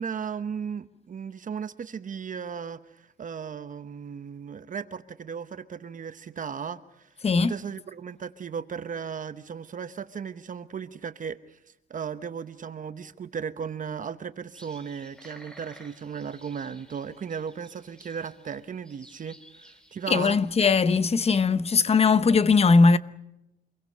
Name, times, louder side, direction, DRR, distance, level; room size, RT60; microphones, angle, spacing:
voice 1, 0.0-7.1 7.4-11.6 11.9-20.4, right 7 dB, 45° right, 1.0 m, -36 dB
voice 2, 7.2-7.5 20.1-23.0, left 4 dB, 35° left, 0.9 m, -20 dB
sound 1, 14.5-21.3, equal, 5° left, 3.9 m, -54 dB
27.0 x 22.0 x 6.7 m
cardioid pair, 130°, 19 cm